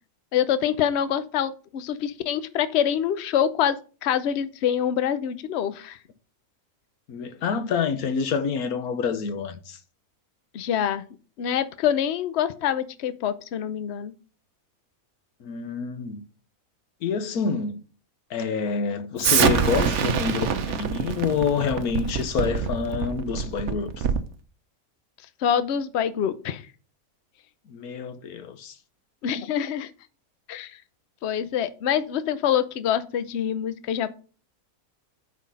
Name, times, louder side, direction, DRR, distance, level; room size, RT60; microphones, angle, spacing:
voice 1, 0.3-6.0 10.5-11.1 11.4-14.1 25.4-26.6 29.2-29.9 30.5-30.8 31.2-34.2, left 9 dB, 55° left, 0.9 m, -25 dB
voice 2, 7.1-9.8 15.4-16.2 17.0-17.8 18.3-24.1 27.7-28.8, left 6 dB, 80° left, 1.4 m, -27 dB
Explosion, 19.2-24.3, right 7 dB, 60° right, 1.0 m, -25 dB
9.3 x 4.2 x 5.5 m
omnidirectional pair, 1.6 m